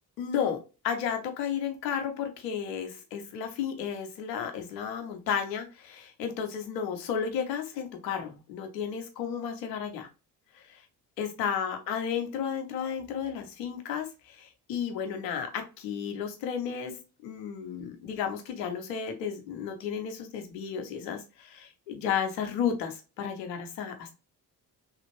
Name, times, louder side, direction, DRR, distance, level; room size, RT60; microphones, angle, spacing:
voice 1, 0.2-0.6 0.8-10.1 10.5-10.8 11.2-16.9 17.2-24.1, left 7 dB, 80° left, 6 dB, 0.8 m, -33 dB
3.2 x 2.5 x 3.0 m, 0.31 s
figure-of-eight pair, 45°, 50 cm